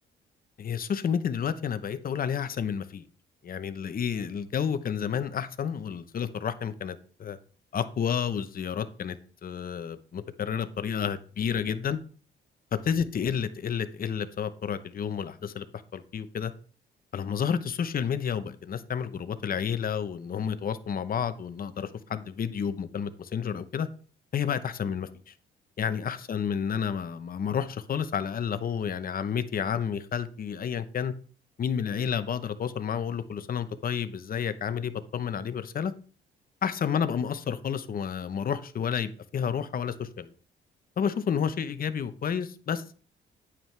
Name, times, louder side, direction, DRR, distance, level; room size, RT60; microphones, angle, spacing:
voice 1, 0.6-3.0 3.4-7.4 7.7-9.2 9.4-12.0 12.8-15.7 15.9-16.5 17.1-23.9 24.3-25.3 25.8-31.1 31.6-35.9 36.6-40.3 41.0-42.9, left 7 dB, 45° left, 0.9 m, -30 dB
9.1 x 8.8 x 3.3 m
cardioid pair, 90°, 20 cm